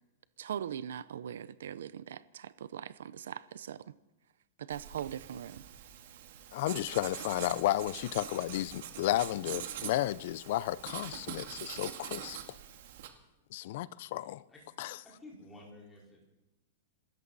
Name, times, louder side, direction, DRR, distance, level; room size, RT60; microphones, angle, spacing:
voice 1, 0.4-3.8 4.6-5.6, right 9 dB, 80° right, 0.7 m, -40 dB
Writing, 4.7-13.1, right 10 dB, 60° right, 1.9 m, -44 dB
voice 2, 6.5-12.4 13.5-14.4 14.8-15.0, left 15 dB, 50° left, 0.5 m, -33 dB
voice 3, 14.5-16.2, left 1 dB, 10° left, 4.5 m, -53 dB
26.5 x 13.5 x 4.1 m
supercardioid pair, 165°, 0 cm